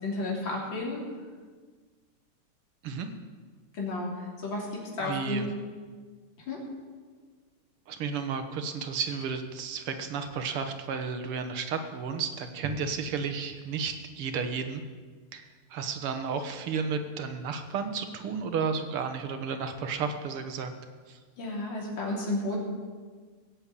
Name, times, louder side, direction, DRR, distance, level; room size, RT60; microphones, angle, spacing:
voice 1, 0.0-1.0 3.8-4.1 4.4-5.5 6.5-6.6 21.4-22.6, left 2 dB, 60° left, -3 dB, 3.9 m, -32 dB
voice 2, 5.0-5.5 7.9-14.8 15.3-20.7 21.1-21.2, right 5 dB, 85° right, 7 dB, 2.1 m, -32 dB
16.5 x 7.7 x 8.4 m, 1.5 s
omnidirectional pair, 2.4 m